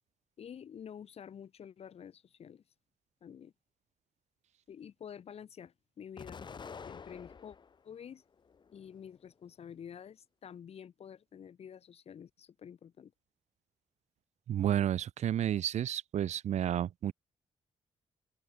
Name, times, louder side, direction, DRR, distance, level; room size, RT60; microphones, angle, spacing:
voice 1, 0.4-2.6 3.2-3.5 4.7-6.4 6.9-7.6 7.8-8.2 8.7-13.1, left 8 dB, 60° left, 5.4 m, -49 dB
Explosion, 6.2-7.8 8.3-9.2, left 6 dB, 40° left, 3.0 m, -48 dB
voice 2, 14.5-17.1, right 10 dB, 75° right, 1.4 m, -31 dB
wide cardioid pair, 130°, 12 cm